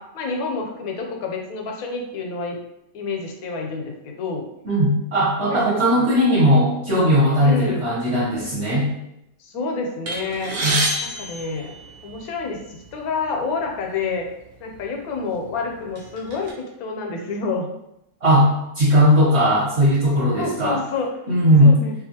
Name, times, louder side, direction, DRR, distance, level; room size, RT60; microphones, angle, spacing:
voice 1, 0.0-2.6 2.9-4.5 5.5-5.6 6.0-6.1 7.4-7.9 9.4-10.5 11.0-11.7 12.0-14.2 14.6-17.7 20.4-21.1 21.6-21.9, left 4 dB, 85° left, 1 dB, 1.1 m, -28 dB
voice 2, 4.6-8.9 10.6-10.8 18.2-18.5 18.7-20.8 21.3-21.8, equal, 50° right, -9 dB, 1.2 m, -17 dB
sound 1, 10.1-12.4 13.2-13.4 13.7-13.9 14.7-14.9 15.4-16.5, right 1 dB, 75° right, 1.1 m, -27 dB
2.7 x 2.4 x 2.7 m, 0.83 s
omnidirectional pair, 1.5 m